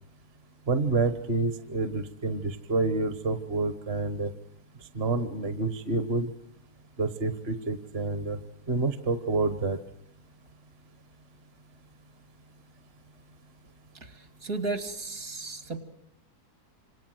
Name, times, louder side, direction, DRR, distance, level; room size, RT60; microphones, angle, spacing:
voice 1, 0.7-4.3 4.9-6.3 7.0-8.4 8.7-9.8, right 3 dB, 40° right, 11 dB, 1.3 m, -28 dB
voice 2, 13.9-15.8, right 3 dB, 60° right, 9 dB, 2.8 m, -34 dB
28.0 x 27.0 x 7.7 m, 0.76 s
omnidirectional pair, 1.7 m